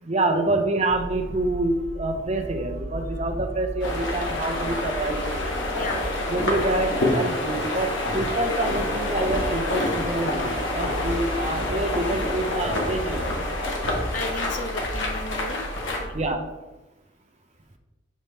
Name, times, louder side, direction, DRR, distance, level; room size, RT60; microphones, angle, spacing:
voice 1, 0.0-5.2 6.3-13.3 16.1-16.5, right 2 dB, 35° right, 5 dB, 0.7 m, -27 dB
sound 1, 0.9-16.4, right 1 dB, 80° right, 1.0 m, -36 dB
sound 2, 3.8-16.0, left 1 dB, 90° left, 1.4 m, -27 dB
voice 2, 5.7-6.2 6.5-6.8 14.1-16.1, left 2 dB, 45° left, 6 dB, 0.7 m, -36 dB
7.3 x 3.6 x 4.2 m, 1.1 s
head